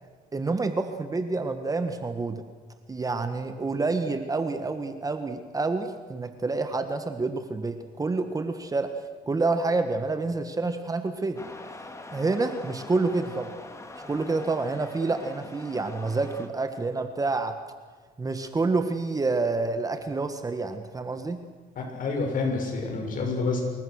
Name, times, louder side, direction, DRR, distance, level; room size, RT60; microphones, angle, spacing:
voice 1, 0.3-2.4 2.9-8.9 9.3-11.4 12.1-13.5 13.9-17.6 18.2-21.4, right 3 dB, 20° right, 8 dB, 1.5 m, -28 dB
sound 1, 11.3-16.5, left 2 dB, 15° left, 2.4 m, -43 dB
voice 2, 21.8-23.6, left 3 dB, 55° left, 2 dB, 6.9 m, -28 dB
25.5 x 21.5 x 6.5 m, 1.5 s
cardioid pair, 110°, 17 cm